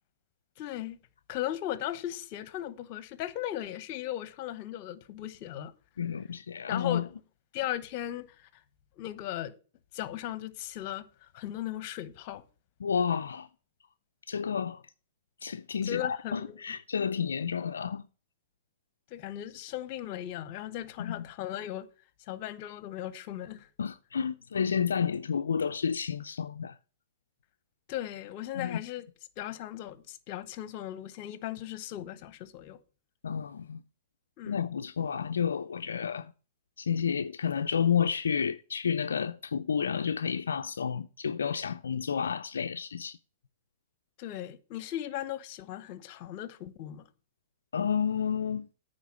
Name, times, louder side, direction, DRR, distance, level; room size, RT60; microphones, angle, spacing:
voice 1, 0.6-1.0 1.3-5.7 6.7-7.1 7.5-8.5 9.0-9.5 9.9-11.0 11.3-12.4 15.8-16.6 19.1-21.9 22.3-23.7 27.9-29.0 29.4-32.8 34.4-34.6 44.2-47.0, left 13 dB, 45° left, 0.9 m, -37 dB
voice 2, 6.0-7.0 12.8-13.5 14.3-14.8 15.4-18.0 21.0-21.2 23.8-26.7 28.5-28.8 33.2-33.8 34.4-36.3 36.8-43.2 47.7-48.7, left 7 dB, 80° left, 0.4 m, -30 dB
9.3 x 4.4 x 7.4 m
hypercardioid pair, 115°, 0 cm